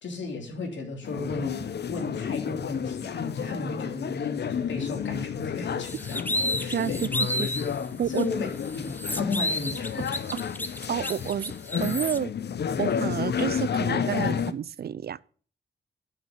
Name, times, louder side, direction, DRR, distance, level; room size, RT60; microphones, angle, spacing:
voice 1, 0.0-6.2 6.6-7.0 7.9-10.1, left 3 dB, 80° left, 3.1 m, -34 dB
sound 1, 1.0-14.5, left 7 dB, 65° left, 0.7 m, -31 dB
sound 2, 5.9-7.7 8.1-8.2 8.6-12.2, left 1 dB, 10° left, 0.8 m, -31 dB
voice 2, 6.7-7.1 7.4-7.5 8.0-8.3 10.9-11.5 11.8-12.3 12.8-15.2, right 9 dB, 55° right, 0.4 m, -29 dB
7.6 x 6.7 x 7.4 m
cardioid pair, 65°, 19 cm